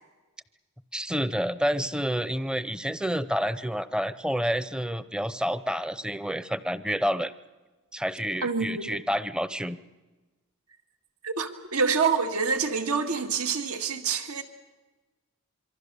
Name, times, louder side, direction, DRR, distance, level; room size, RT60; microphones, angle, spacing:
voice 1, 0.9-7.3 7.9-9.8, equal, 5° right, 14 dB, 0.7 m, -29 dB
voice 2, 8.4-8.9 11.2-14.4, right 5 dB, 80° right, 6 dB, 2.0 m, -27 dB
26.5 x 24.0 x 6.8 m, 1.2 s
head